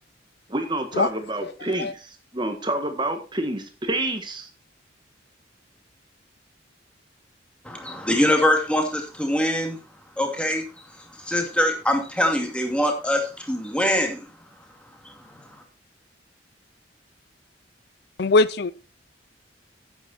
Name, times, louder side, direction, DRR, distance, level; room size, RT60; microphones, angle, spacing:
voice 1, 0.5-4.5, right 1 dB, 25° right, 1.7 m, -28 dB
voice 2, 7.6-9.8 10.2-10.6 11.2-14.3 15.0-15.4, left 1 dB, 5° left, 2.4 m, -23 dB
voice 3, 18.2-18.7, left 3 dB, 60° left, 0.6 m, -20 dB
10.0 x 8.7 x 4.4 m
head